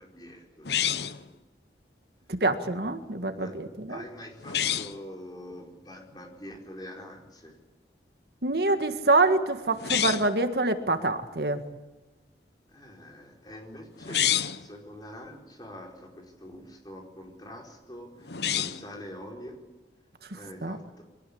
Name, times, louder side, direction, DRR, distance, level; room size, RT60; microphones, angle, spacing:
voice 1, 0.0-1.4 3.2-3.5 3.9-7.6 12.7-19.6 20.3-21.0, equal, 25° left, 1 dB, 4.7 m, -45 dB
sound 1, 0.6-1.3 4.4-5.0 9.7-10.4 14.0-14.7 18.2-18.9, left 10 dB, 75° left, 0.9 m, -28 dB
voice 2, 2.3-4.0 8.4-11.6 20.3-20.8, right 2 dB, 65° right, 8 dB, 1.7 m, -26 dB
23.0 x 18.0 x 8.6 m, 1.2 s
head